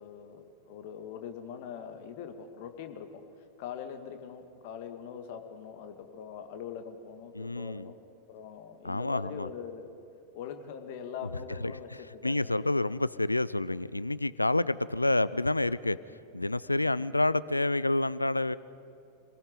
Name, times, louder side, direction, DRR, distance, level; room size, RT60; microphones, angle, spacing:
voice 1, 0.0-3.2 3.6-8.0 8.3-9.9 10.3-12.6, left 7 dB, 50° left, 7 dB, 1.7 m, -42 dB
voice 2, 7.3-7.9 8.8-9.5 11.6-11.7 12.2-16.0 16.3-18.6, left 2 dB, 85° left, 19 dB, 0.4 m, -28 dB
27.0 x 19.0 x 5.2 m, 2.9 s
figure-of-eight pair, 90°, 0 cm